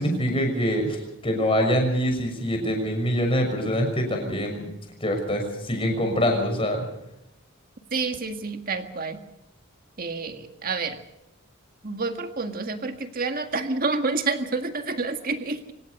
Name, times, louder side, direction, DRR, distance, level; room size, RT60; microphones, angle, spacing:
voice 1, 0.0-4.7 5.0-6.8, equal, 25° left, 2 dB, 6.2 m, -24 dB
voice 2, 7.9-9.2 10.0-11.0 11.8-15.7, right 3 dB, 45° right, 6 dB, 1.9 m, -28 dB
25.0 x 18.5 x 6.7 m, 0.85 s
head